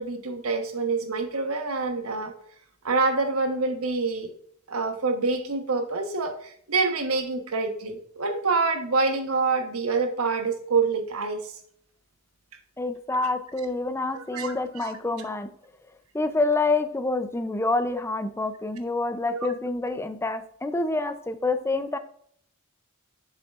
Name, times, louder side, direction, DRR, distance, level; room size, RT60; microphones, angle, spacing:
voice 1, 0.0-2.3 2.8-4.3 4.7-11.5 14.3-14.5 14.8-14.9 15.2-15.3 19.3-19.5, right 4 dB, 85° right, 6 dB, 1.1 m, -26 dB
voice 2, 12.8-15.5 16.1-22.0, left 3 dB, 10° left, 9 dB, 0.5 m, -27 dB
7.5 x 6.2 x 2.4 m, 0.64 s
head